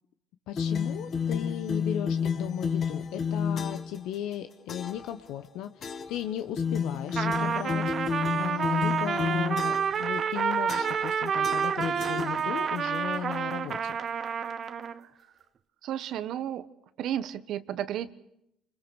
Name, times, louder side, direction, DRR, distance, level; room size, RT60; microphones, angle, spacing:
voice 1, 0.5-14.0, left 11 dB, 75° left, 8 dB, 1.2 m, -36 dB
sound 1, 0.6-4.0 4.7-5.1 5.8-6.2 6.6-10.0 10.7-11.1 11.4-12.8, left 6 dB, 45° left, 2.0 m, -31 dB
Trumpet, 7.1-15.0, right 7 dB, 45° right, 1.1 m, -29 dB
voice 2, 15.8-16.7 17.0-18.1, right 10 dB, 65° right, 14 dB, 1.2 m, -32 dB
29.0 x 21.0 x 6.4 m, 0.78 s
cardioid pair, 105°, 0 cm